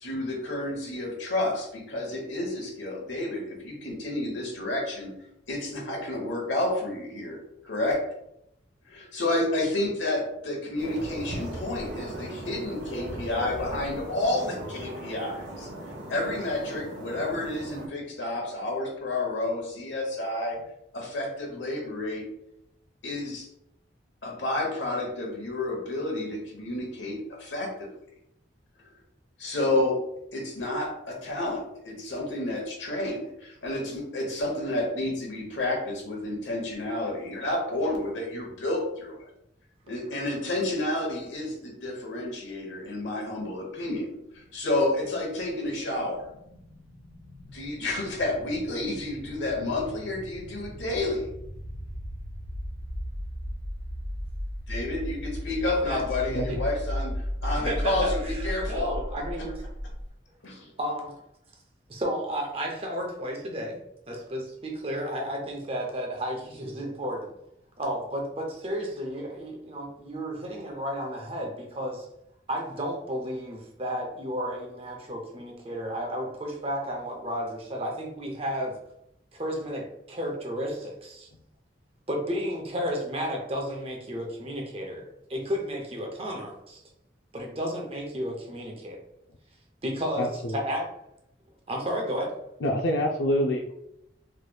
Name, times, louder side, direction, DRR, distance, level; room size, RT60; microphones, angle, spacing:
voice 1, 0.0-5.1 5.5-8.1 8.9-15.7 16.1-20.6 20.9-22.3 23.0-23.5 24.2-27.9 29.4-30.0 30.3-39.3 39.9-46.3 47.5-51.3 54.7-58.9 60.4-60.7, left 2 dB, 90° left, 0 dB, 1.0 m, -30 dB
sound 1, 10.8-17.9, right 1 dB, 90° right, 0.9 m, -38 dB
sound 2, 44.2-60.1, equal, 55° right, 1.2 m, -36 dB
voice 2, 55.6-56.0 57.5-59.7 60.8-61.2 61.9-63.8 64.1-67.3 67.8-72.1 72.5-78.8 79.3-81.3 82.1-85.0 85.3-86.8 87.3-89.0 89.8-90.3 90.5-91.0 91.7-92.3, equal, 30° right, 1 dB, 0.6 m, -32 dB
voice 3, 90.2-90.6 92.6-93.7, equal, 70° left, 2 dB, 0.4 m, -26 dB
3.3 x 3.0 x 2.2 m, 0.78 s
head